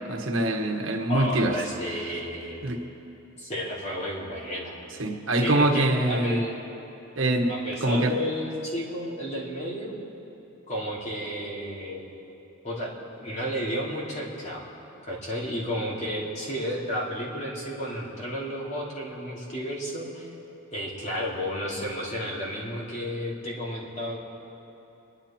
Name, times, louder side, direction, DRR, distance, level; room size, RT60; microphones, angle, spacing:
voice 1, 0.1-1.6 2.6-2.8 5.0-6.4 7.2-7.5 7.8-8.1, right 1 dB, 75° right, 2 dB, 1.6 m, -24 dB
voice 2, 1.1-2.6 3.4-4.8 5.4-6.6 7.5-9.9 10.7-12.0 12.6-14.6 15.0-20.3 20.7-24.2, equal, 35° left, -4 dB, 2.9 m, -32 dB
27.0 x 11.0 x 4.4 m, 2.9 s
head